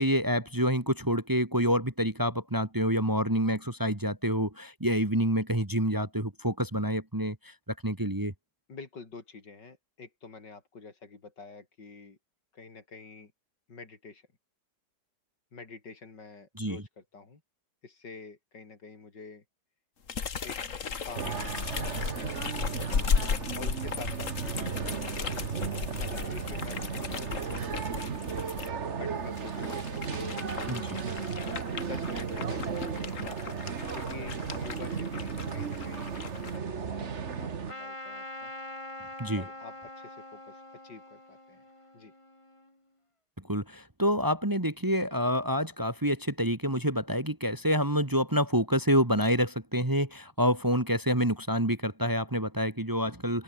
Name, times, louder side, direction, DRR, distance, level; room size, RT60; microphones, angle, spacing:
voice 1, 0.0-7.5 7.8-8.3 16.6-16.8 30.7-30.9 39.2-39.4 43.5-53.4, equal, 10° right, 1.7 m, -27 dB
voice 2, 8.7-12.2 12.5-13.3 13.7-14.2 15.5-17.4 17.8-19.4 20.4-20.6 21.0-21.5 22.1-22.8 23.5-24.8 25.2-28.1 29.0-31.1 31.8-33.1 33.9-38.5 39.3-41.6 41.9-42.1, left 4 dB, 80° left, 4.2 m, -47 dB
sound 1, 20.1-28.7 29.3-36.6, left 6 dB, 50° left, 1.9 m, -36 dB
sound 2, 21.1-37.7, right 6 dB, 40° right, 1.6 m, -35 dB
Trumpet, 37.7-42.7, left 1 dB, 15° left, 3.5 m, -44 dB
open air
omnidirectional pair, 1.9 m